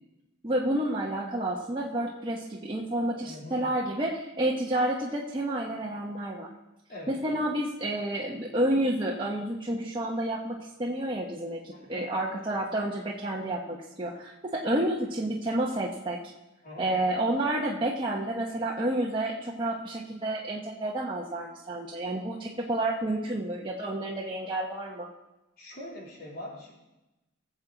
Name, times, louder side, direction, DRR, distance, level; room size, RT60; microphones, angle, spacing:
voice 1, 0.4-6.5 7.1-16.2 16.8-25.1, right 1 dB, 25° right, -3 dB, 1.0 m, -30 dB
voice 2, 3.2-3.6 6.9-7.1 11.7-12.1 16.6-16.9 25.6-26.7, left 1 dB, 50° left, -3 dB, 3.3 m, -42 dB
19.5 x 7.2 x 4.0 m, 0.99 s
head